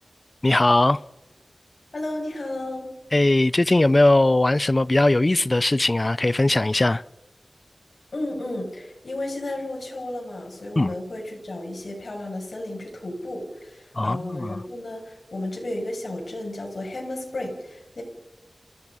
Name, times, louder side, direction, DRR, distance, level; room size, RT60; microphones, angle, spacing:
voice 1, 0.4-1.0 3.1-7.0 10.8-10.9 14.0-14.6, left 2 dB, 35° left, 0.6 m, -19 dB
voice 2, 1.9-2.9 8.1-18.0, left 1 dB, 65° left, 7.8 m, -33 dB
27.5 x 17.0 x 5.6 m
wide cardioid pair, 65°, 0 cm